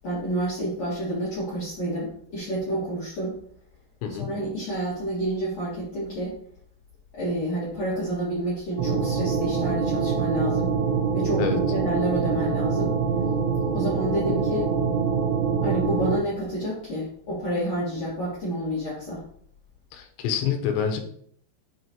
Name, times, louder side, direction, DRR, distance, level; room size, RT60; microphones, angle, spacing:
voice 1, 0.0-3.3 4.2-6.3 7.1-10.7 11.1-12.9 13.7-14.7 15.6-19.2, right 1 dB, 50° left, -8 dB, 2.3 m, -29 dB
sound 1, 8.8-16.2, right 5 dB, 85° right, 3.3 m, -25 dB
voice 2, 19.9-21.0, left 8 dB, 80° left, 5 dB, 3.1 m, -27 dB
9.6 x 4.5 x 2.9 m, 0.64 s
omnidirectional pair, 5.2 m